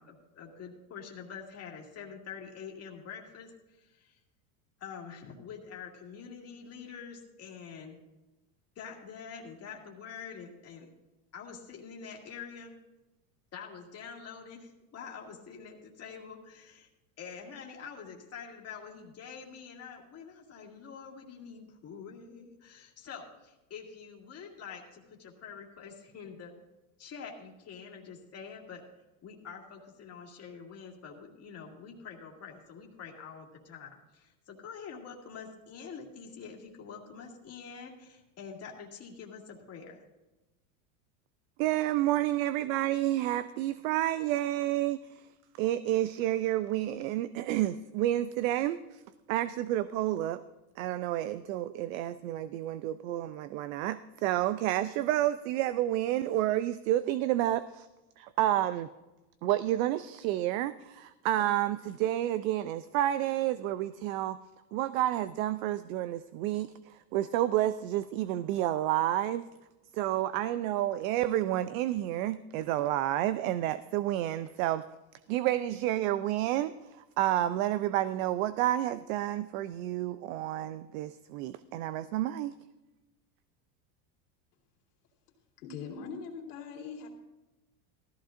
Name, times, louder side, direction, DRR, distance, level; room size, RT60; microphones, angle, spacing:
voice 1, 0.0-3.5 3.8-4.2 4.8-8.0 8.8-10.9 11.3-12.7 13.5-16.9 17.2-26.5 27.0-28.8 29.2-40.0, left 6 dB, 30° left, 0 dB, 2.2 m, -46 dB
voice 2, 41.6-45.2 45.6-49.0 49.3-50.4 50.8-57.9 58.2-58.9 59.4-64.4 64.7-69.5 69.9-74.8 75.3-82.5, right 13 dB, 60° right, 15 dB, 0.5 m, -30 dB
voice 3, 85.6-87.1, left 5 dB, 80° left, 0 dB, 2.8 m, -41 dB
16.0 x 14.0 x 2.5 m, 1.0 s
supercardioid pair, 120°, 45 cm